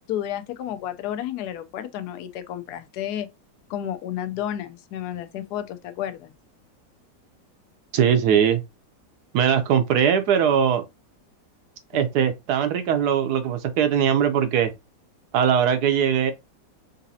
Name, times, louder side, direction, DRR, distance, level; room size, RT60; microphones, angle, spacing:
voice 1, 0.1-3.3 3.7-6.3, left 11 dB, 70° left, 1.0 m, -31 dB
voice 2, 7.9-8.6 9.3-10.8 11.9-14.7 15.3-16.3, right 8 dB, 70° right, 1.1 m, -20 dB
4.0 x 2.6 x 2.7 m
omnidirectional pair, 2.0 m